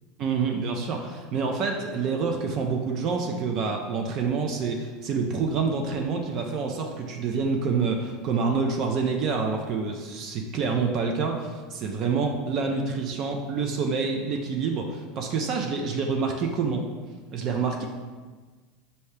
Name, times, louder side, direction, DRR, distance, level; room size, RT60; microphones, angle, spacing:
voice 1, 0.2-16.9 17.3-17.9, right 5 dB, 45° right, 3 dB, 0.5 m, -27 dB
5.5 x 2.7 x 3.2 m, 1.4 s
supercardioid pair, 140°, 0 cm